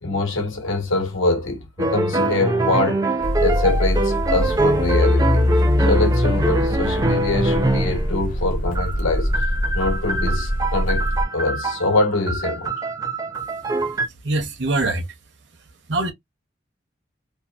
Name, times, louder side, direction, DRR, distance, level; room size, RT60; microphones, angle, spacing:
voice 1, 0.0-3.1 3.4-5.5 5.8-9.5 9.7-11.1 11.3-12.7, left 2 dB, 85° left, 1.0 m, -24 dB
sound 1, 1.8-8.1 8.7-14.1, right 2 dB, 20° right, 0.4 m, -24 dB
sound 2, 3.2-11.2, left 1 dB, 45° left, 0.6 m, -22 dB
voice 2, 13.9-15.2 15.6-16.1, right 2 dB, 60° right, 0.7 m, -25 dB
2.6 x 2.3 x 2.2 m
head